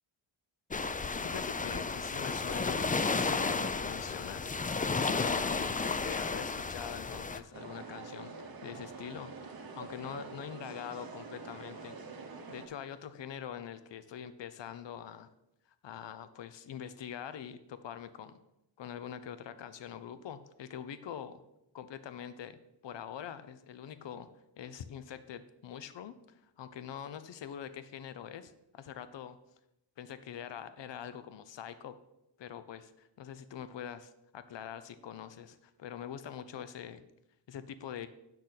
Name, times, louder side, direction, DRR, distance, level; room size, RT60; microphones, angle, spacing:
sound 1, 0.7-7.4, left 4 dB, 20° left, 0.3 m, -33 dB
voice 1, 1.2-4.6 4.9-9.3 9.7-12.0 12.5-15.3 15.8-18.4 18.8-21.4 21.7-24.3 24.6-29.4 30.0-32.0 32.4-37.0 37.5-38.1, left 9 dB, 75° left, 12 dB, 0.6 m, -44 dB
sound 2, 7.5-12.7, right 4 dB, 50° right, 1.0 m, -46 dB
8.3 x 6.4 x 4.0 m, 0.86 s
wide cardioid pair, 105°, 45 cm